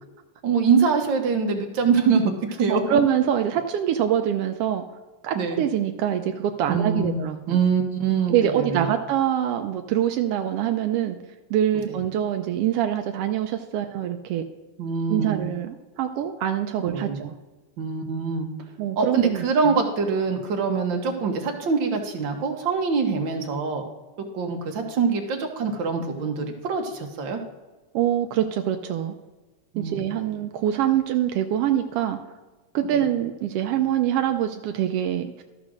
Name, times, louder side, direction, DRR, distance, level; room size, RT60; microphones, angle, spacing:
voice 1, 0.4-2.3 2.6-3.0 5.3-5.6 6.7-7.2 7.5-8.9 11.7-12.0 14.8-15.4 16.8-17.2 17.8-18.5 19.0-23.8 24.3-27.4 29.7-30.0 32.9-33.0, right 5 dB, 55° right, 4 dB, 1.5 m, -24 dB
voice 2, 2.7-4.8 5.2-7.6 8.3-11.2 11.5-14.4 15.1-17.3 18.8-19.7 27.9-29.1 29.8-32.2 32.7-35.4, right 10 dB, 85° right, 6 dB, 1.3 m, -24 dB
13.0 x 5.0 x 6.3 m, 1.2 s
omnidirectional pair, 3.3 m